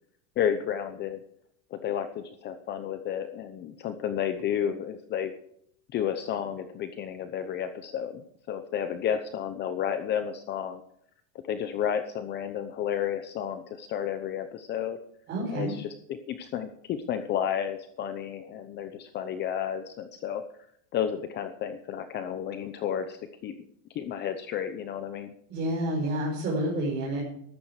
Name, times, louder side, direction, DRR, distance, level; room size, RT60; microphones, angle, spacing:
voice 1, 0.4-1.2 1.7-5.3 5.9-10.8 11.4-15.0 15.5-20.4 20.9-23.5 23.9-25.3, left 9 dB, 25° left, 9 dB, 0.8 m, -32 dB
voice 2, 15.3-15.7 25.5-27.2, right 1 dB, 25° right, -4 dB, 5.3 m, -29 dB
13.5 x 13.5 x 4.9 m, 0.69 s
supercardioid pair, 165°, 41 cm